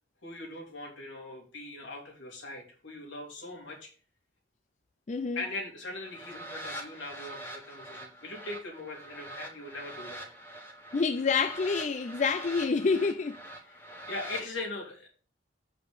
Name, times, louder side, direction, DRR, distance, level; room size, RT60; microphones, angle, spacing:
voice 1, 0.2-3.9 5.3-10.3 13.6-15.1, left 2 dB, 80° left, 3.0 m, -40 dB
voice 2, 5.1-5.4 10.9-13.4, left 4 dB, 40° left, 0.4 m, -27 dB
sound 1, 6.0-14.5, right 1 dB, 15° left, 1.4 m, -44 dB
8.1 x 5.2 x 5.1 m
head